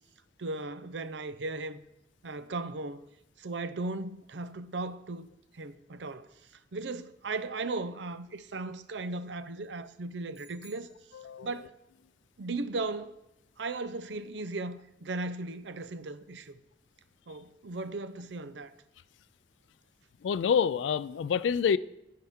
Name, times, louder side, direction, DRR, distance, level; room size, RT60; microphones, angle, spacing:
voice 1, 0.4-1.8 2.2-3.0 3.4-6.3 6.7-10.9 11.4-11.8 12.4-13.2 13.6-16.6 17.3-18.7, right 3 dB, 75° right, 0.6 m, -37 dB
sound 1, 10.3-11.8, left 2 dB, 30° left, 2.1 m, -59 dB
voice 2, 20.2-21.8, left 7 dB, 85° left, 0.3 m, -27 dB
15.0 x 5.6 x 3.6 m
head